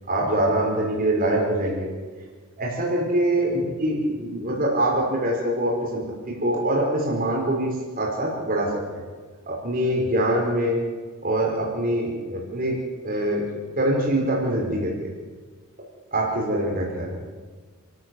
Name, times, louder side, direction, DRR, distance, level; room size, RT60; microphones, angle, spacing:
voice 1, 0.1-1.9 2.6-9.0 9.5-10.8 11.2-12.8 13.0-13.5 13.8-15.1 16.1-17.2, right 1 dB, 45° right, -2 dB, 5.5 m, -24 dB
30.0 x 14.0 x 8.1 m, 1.5 s
head